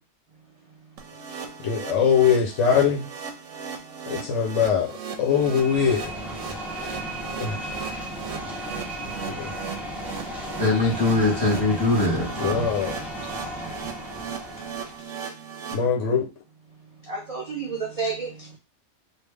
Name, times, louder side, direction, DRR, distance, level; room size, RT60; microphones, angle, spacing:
sound 1, 1.0-15.7, right 6 dB, 85° right, 1.0 m, -37 dB
voice 1, 1.6-3.1 4.1-6.0 7.4-7.6 9.3-9.5 12.4-13.0 15.7-16.3, left 7 dB, 80° left, 0 dB, 1.0 m, -22 dB
sound 2, 5.2-15.1, right 1 dB, ahead, 0.7 m, -35 dB
voice 2, 10.6-12.7, left 2 dB, 20° left, -4 dB, 1.3 m, -22 dB
voice 3, 17.0-18.6, right 4 dB, 50° right, 1 dB, 0.4 m, -31 dB
3.3 x 2.4 x 3.3 m, 0.28 s
omnidirectional pair, 1.3 m